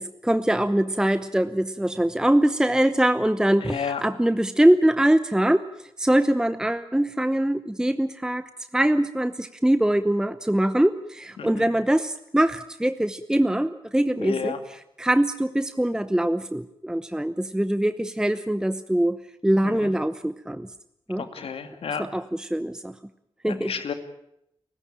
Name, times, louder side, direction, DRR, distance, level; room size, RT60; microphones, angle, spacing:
voice 1, 0.0-5.6 6.0-14.6 15.0-19.2 19.4-20.7 21.1-21.2 22.0-22.9 23.4-23.7, right 1 dB, 5° right, 11 dB, 0.9 m, -23 dB
voice 2, 3.6-4.0 11.4-11.7 14.2-14.6 19.6-19.9 21.2-22.1 23.5-23.9, left 6 dB, 80° left, 8 dB, 2.4 m, -31 dB
29.5 x 15.0 x 8.9 m, 0.79 s
cardioid pair, 70°, 10 cm